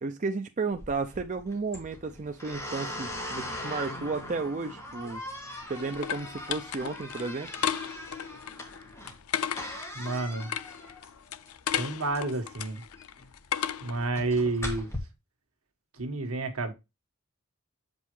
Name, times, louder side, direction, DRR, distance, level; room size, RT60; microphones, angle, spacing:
voice 1, 0.0-5.2 5.7-7.5, right 4 dB, 35° right, 0.5 m, -33 dB
sound 1, 0.7-15.0, left 1 dB, 15° left, 1.8 m, -41 dB
sound 2, 5.1-14.1, left 9 dB, 85° left, 0.5 m, -35 dB
voice 2, 9.9-10.5 11.8-12.8 13.8-14.9 15.9-16.7, right 2 dB, 75° right, 1.6 m, -30 dB
7.6 x 5.3 x 3.2 m
head